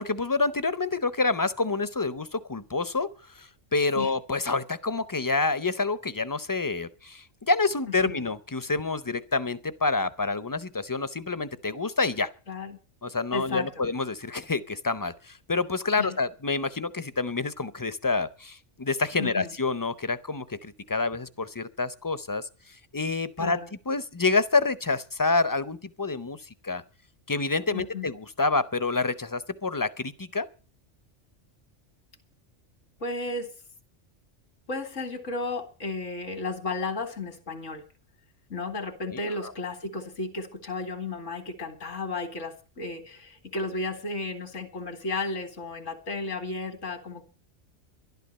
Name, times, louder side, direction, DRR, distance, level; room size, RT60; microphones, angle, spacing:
voice 1, 0.0-12.3 13.0-22.5 22.9-23.6 23.9-26.8 27.3-30.5 39.0-39.5, left 3 dB, 25° left, 0.5 m, -28 dB
voice 2, 12.5-12.8 13.3-13.7 16.0-16.2 19.2-19.5 23.4-23.7 27.7-28.1 33.0-33.5 34.7-37.8 38.5-47.2, left 3 dB, 90° left, 2.5 m, -33 dB
12.0 x 12.0 x 6.6 m
omnidirectional pair, 1.2 m